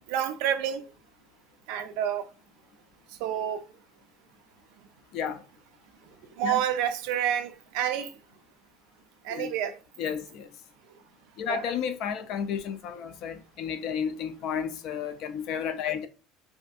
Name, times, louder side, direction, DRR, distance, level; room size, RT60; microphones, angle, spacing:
voice 1, 0.1-0.9 1.7-2.2 3.2-3.6 6.4-8.1 9.2-9.8 11.5-11.6, right 10 dB, 70° right, 0.4 m, -28 dB
voice 2, 5.1-5.4 6.4-6.6 9.3-9.5 10.0-10.5 11.4-16.1, left 7 dB, 50° left, 0.4 m, -32 dB
2.6 x 2.5 x 2.3 m
cardioid pair, 165°, 0 cm